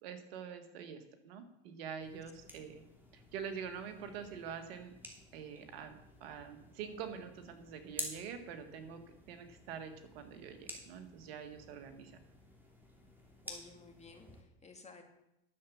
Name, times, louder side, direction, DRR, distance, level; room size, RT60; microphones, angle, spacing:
voice 1, 0.0-2.8 3.1-5.0 5.3-5.9 6.2-9.0 9.3-12.1, right 7 dB, 85° right, 7 dB, 1.7 m, -45 dB
sound 1, 2.0-14.4, equal, 5° right, 3.0 m, -51 dB
voice 2, 13.4-15.0, left 4 dB, 20° left, 4 dB, 2.2 m, -55 dB
11.0 x 7.3 x 7.1 m, 0.83 s
supercardioid pair, 100°, 30 cm